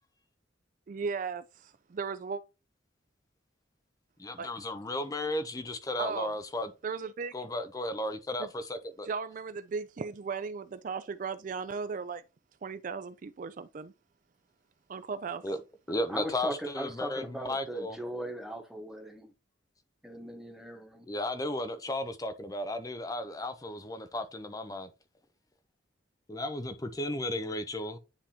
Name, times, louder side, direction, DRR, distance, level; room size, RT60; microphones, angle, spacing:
voice 1, 0.9-2.4 4.4-4.5 6.0-6.4 6.8-7.4 8.4-8.5 9.0-12.2 12.6-13.9 14.9-15.4, right 5 dB, 45° right, 0.4 m, -36 dB
voice 2, 4.2-6.7 7.3-9.1 15.4-15.6 15.9-18.0 21.1-24.9 26.3-28.0, left 1 dB, 20° left, 0.5 m, -34 dB
voice 3, 16.1-19.3 20.0-21.1, right 1 dB, 5° right, 1.0 m, -39 dB
10.0 x 3.5 x 2.8 m
head